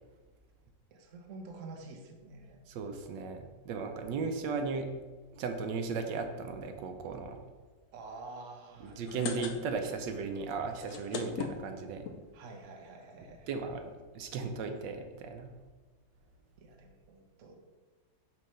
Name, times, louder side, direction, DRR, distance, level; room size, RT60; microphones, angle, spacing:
voice 1, 0.9-2.6 7.9-9.3 12.3-13.5 16.6-17.6, right 3 dB, 55° right, 3 dB, 1.1 m, -48 dB
voice 2, 2.7-4.9 5.3-7.4 8.8-12.1 13.5-13.8 14.1-15.5, right 4 dB, 85° right, 6 dB, 1.3 m, -36 dB
sound 1, 8.9-10.0 10.3-10.4 10.7-12.2 12.9-13.0 13.2-13.3 13.5-13.7, left 5 dB, 65° left, 1.1 m, -38 dB
7.5 x 3.2 x 5.4 m, 1.3 s
omnidirectional pair, 1.9 m